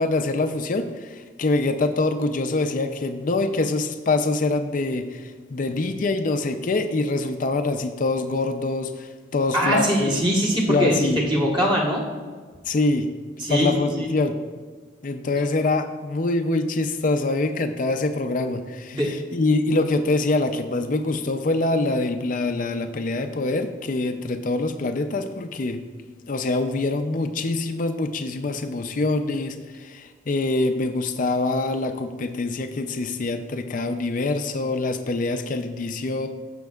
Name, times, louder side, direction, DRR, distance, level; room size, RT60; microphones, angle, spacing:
voice 1, 0.0-10.2 10.7-11.2 12.7-13.1 13.5-14.3 15.0-19.0 19.3-25.8 26.3-36.3, left 2 dB, 45° left, 6 dB, 0.4 m, -24 dB
voice 2, 9.5-12.0 13.4-13.7 14.0-14.1 18.9-19.2, equal, 25° right, -3 dB, 1.3 m, -22 dB
15.0 x 5.3 x 2.4 m, 1.5 s
head